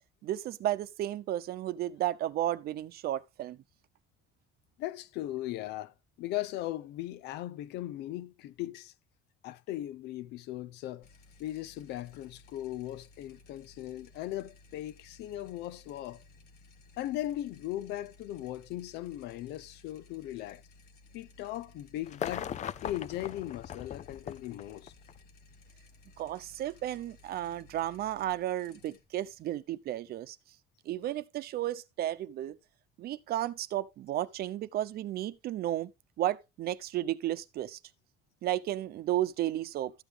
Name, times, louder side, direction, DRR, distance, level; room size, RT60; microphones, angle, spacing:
voice 1, 0.2-3.6 26.2-30.4 30.9-32.6 33.0-35.9 36.2-37.8 38.4-39.9, right 13 dB, 65° right, 0.8 m, -33 dB
voice 2, 4.8-5.9 6.2-8.9 9.4-11.1 11.4-16.2 17.0-20.6 21.1-22.5 22.8-24.9, left 14 dB, 85° left, 0.7 m, -38 dB
sound 1, 11.0-30.3, left 3 dB, 70° left, 1.7 m, -59 dB
sound 2, 22.1-25.2 26.3-26.4, left 9 dB, 45° left, 0.5 m, -39 dB
13.0 x 8.1 x 3.4 m
cardioid pair, 110°, 17 cm